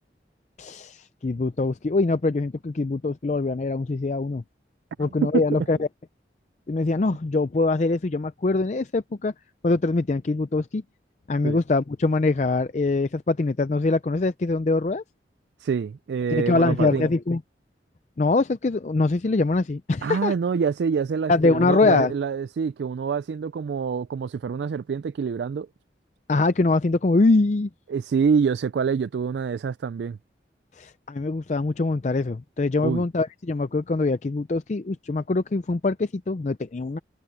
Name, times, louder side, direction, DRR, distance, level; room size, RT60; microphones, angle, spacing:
voice 1, 0.6-4.4 5.0-5.9 6.7-9.3 9.6-10.8 11.3-15.0 16.3-17.4 18.2-20.3 21.3-22.1 26.3-27.7 30.7-37.0, left 3 dB, 40° left, 0.4 m, -23 dB
voice 2, 5.0-5.7 11.4-11.6 15.6-17.1 20.0-25.7 27.9-30.2 32.8-33.0, right 6 dB, 75° right, 0.3 m, -26 dB
head